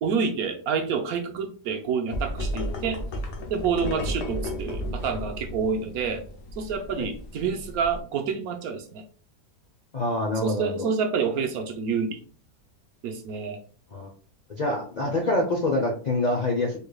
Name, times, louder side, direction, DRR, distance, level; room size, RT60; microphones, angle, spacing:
voice 1, 0.0-3.0 3.5-6.2 6.6-9.0 10.4-12.2 13.0-13.6 15.0-15.1, right 6 dB, 70° right, 5 dB, 1.1 m, -28 dB
sound 1, 2.1-8.0, left 1 dB, 85° left, 1.3 m, -33 dB
voice 2, 9.9-10.9 13.9-14.1 14.5-16.8, left 2 dB, 70° left, 1 dB, 0.4 m, -26 dB
4.6 x 3.3 x 2.2 m, 0.42 s
omnidirectional pair, 1.7 m